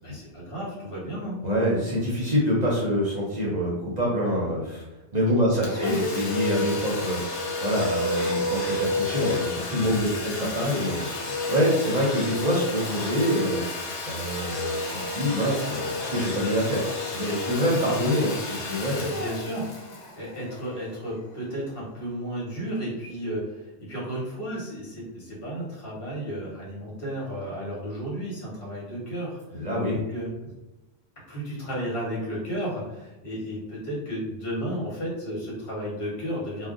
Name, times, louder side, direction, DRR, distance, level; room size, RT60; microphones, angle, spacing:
voice 1, 0.0-1.4 5.5-6.0 10.0-10.5 19.1-30.5 31.3-36.7, equal, 55° left, -6 dB, 1.3 m, -33 dB
voice 2, 1.4-4.8 5.1-13.6 14.0-16.8 17.1-19.1 29.5-30.0, equal, 45° right, -5 dB, 0.7 m, -26 dB
Domestic sounds home sounds, 5.6-21.1, left 2 dB, 80° left, 1.0 m, -31 dB
2.5 x 2.1 x 3.6 m, 1.1 s
omnidirectional pair, 1.2 m